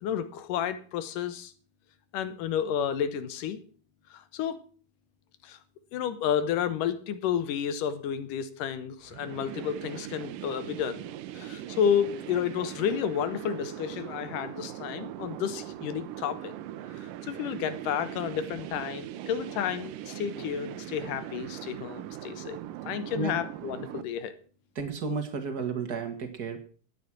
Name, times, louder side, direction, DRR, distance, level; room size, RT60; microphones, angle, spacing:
voice 1, 0.0-1.5 2.1-3.6 4.1-4.6 5.4-5.6 5.9-16.5 17.0-24.3, left 8 dB, 85° left, 12 dB, 2.7 m, -31 dB
sound 1, 9.0-24.0, right 12 dB, 90° right, 2.4 m, -40 dB
voice 2, 24.7-26.6, right 4 dB, 40° right, 5 dB, 1.6 m, -32 dB
12.5 x 10.0 x 6.1 m, 0.41 s
omnidirectional pair, 3.7 m